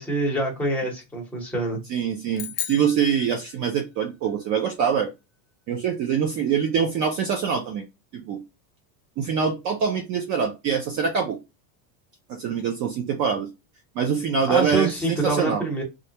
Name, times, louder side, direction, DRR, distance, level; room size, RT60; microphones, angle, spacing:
voice 1, 0.0-1.8 14.5-15.8, right 2 dB, 5° left, 0.9 m, -25 dB
voice 2, 1.9-5.1 5.7-7.8 8.1-8.4 9.2-11.4 12.3-13.5 14.0-15.6, right 7 dB, 40° right, 0.5 m, -24 dB
sound 1, 2.3-4.0, left 10 dB, 35° left, 0.5 m, -35 dB
3.3 x 2.5 x 2.8 m
supercardioid pair, 150°, 46 cm